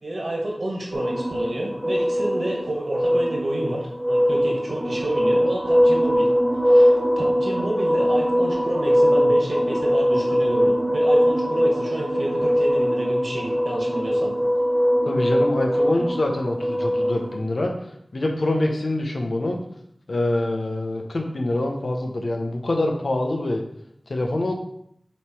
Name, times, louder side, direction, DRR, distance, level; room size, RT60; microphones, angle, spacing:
voice 1, 0.0-6.3 6.6-14.3, right 1 dB, 65° right, -2 dB, 1.8 m, -29 dB
sound 1, 0.9-17.4, equal, 15° right, 1.0 m, -21 dB
voice 2, 15.1-17.7 18.1-19.6 20.1-23.6 24.1-24.5, left 1 dB, 70° left, 2 dB, 1.0 m, -25 dB
7.4 x 3.2 x 4.5 m, 0.72 s
wide cardioid pair, 75°, 0 cm